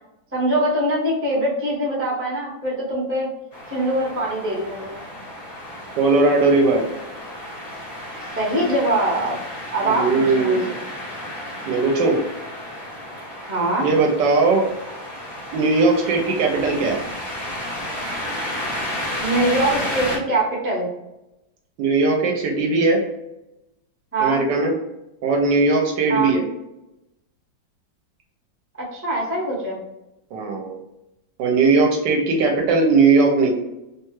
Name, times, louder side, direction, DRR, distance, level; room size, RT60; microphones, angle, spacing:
voice 1, 0.3-3.3 3.7-5.0 8.3-9.4 9.7-10.6 13.4-13.9 19.2-20.9 24.1-24.4 26.1-26.3 28.9-29.8, right 1 dB, 15° right, -6 dB, 0.5 m, -23 dB
sound 1, 3.5-20.2, left 1 dB, 50° left, 0.5 m, -32 dB
voice 2, 6.0-6.8 9.8-10.6 11.7-12.2 13.8-14.6 15.5-17.0 21.8-23.0 24.2-24.7 25.2-26.4 30.3-30.8 31.4-33.5, right 3 dB, 75° right, 1 dB, 1.2 m, -18 dB
3.0 x 2.3 x 3.0 m, 0.90 s
omnidirectional pair, 2.1 m